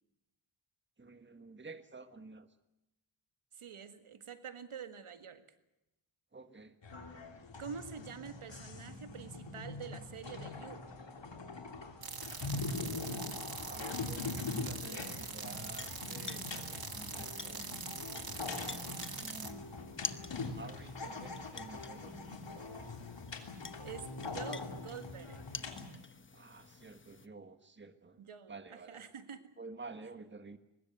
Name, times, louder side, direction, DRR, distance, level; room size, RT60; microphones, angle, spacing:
voice 1, 1.0-2.5 6.3-6.8 13.0-13.3 13.6-18.2 19.1-20.0 20.5-22.9 26.3-28.2 28.5-29.0 29.6-30.6, right 3 dB, 25° right, 10 dB, 1.5 m, -51 dB
voice 2, 3.5-5.4 7.6-10.9 23.8-25.5 28.2-29.5, right 6 dB, 85° right, 10 dB, 1.9 m, -47 dB
sound 1, 6.8-25.9, left 3 dB, 60° left, 3.4 m, -43 dB
sound 2, 12.0-19.5, right 5 dB, 45° right, 2.0 m, -44 dB
sound 3, 15.2-27.3, left 4 dB, 25° left, 1.0 m, -49 dB
23.5 x 20.5 x 8.0 m, 0.92 s
wide cardioid pair, 120°, 49 cm